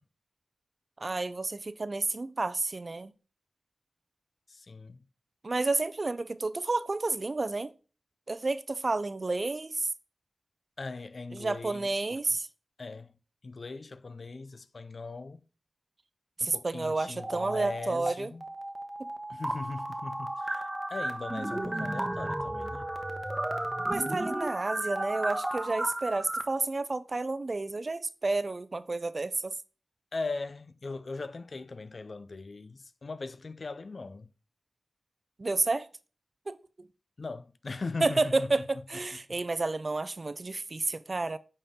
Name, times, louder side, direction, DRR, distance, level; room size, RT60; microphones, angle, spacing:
voice 1, 1.0-3.1 5.4-7.7 8.3-9.9 11.3-12.5 16.4-18.3 19.0-19.1 23.9-29.5 35.4-35.9 36.5-36.9 38.0-38.6 38.9-41.4, right 3 dB, 50° right, 0.5 m, -30 dB
voice 2, 4.5-5.0 10.8-12.4 12.8-13.1 13.4-15.4 16.4-18.4 19.3-22.9 30.1-34.3 37.2-38.5, left 3 dB, 65° left, 0.4 m, -40 dB
sound 1, 17.2-18.1 18.4-26.4, right 1 dB, 20° right, 0.9 m, -34 dB
8.5 x 4.3 x 3.6 m
cardioid pair, 50°, 0 cm